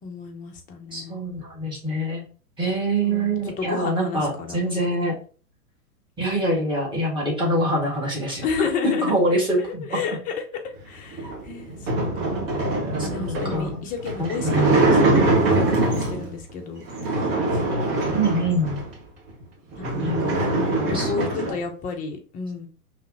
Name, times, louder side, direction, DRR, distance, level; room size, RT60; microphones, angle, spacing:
voice 1, 0.0-1.2 3.0-5.1 8.4-9.2 9.6-10.3 10.6-11.9 12.1-12.5 13.0-17.2 17.5-17.7 19.9-22.7, left 5 dB, 15° left, 3 dB, 0.7 m, -32 dB
voice 2, 0.9-2.2 2.6-5.1 6.2-8.4 9.0-10.0 13.0-13.8 14.2-14.8 18.1-18.8 20.0-20.3 20.8-21.5, right 1 dB, 10° right, -3 dB, 1.8 m, -25 dB
sound 1, 11.1-16.3 16.9-18.9 19.4-19.5 19.7-21.6, right 2 dB, 40° right, 1.4 m, -23 dB
5.3 x 3.1 x 2.7 m, 0.39 s
figure-of-eight pair, 105°, 46 cm